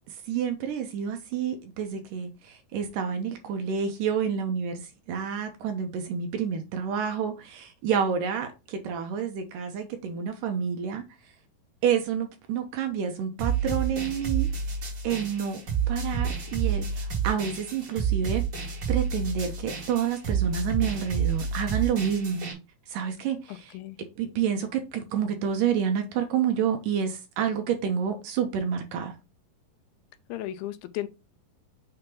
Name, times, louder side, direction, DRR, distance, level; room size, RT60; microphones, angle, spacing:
voice 1, 0.1-11.0 11.8-14.5 15.0-15.6 15.9-18.4 18.9-22.4 22.9-23.7 24.2-29.2, right 7 dB, 75° right, 2.2 m, -29 dB
sound 1, 13.4-22.5, right 7 dB, 40° right, 1.9 m, -29 dB
voice 2, 23.5-24.0 30.3-31.1, left 14 dB, 80° left, 2.4 m, -35 dB
6.7 x 2.9 x 5.3 m
omnidirectional pair, 4.3 m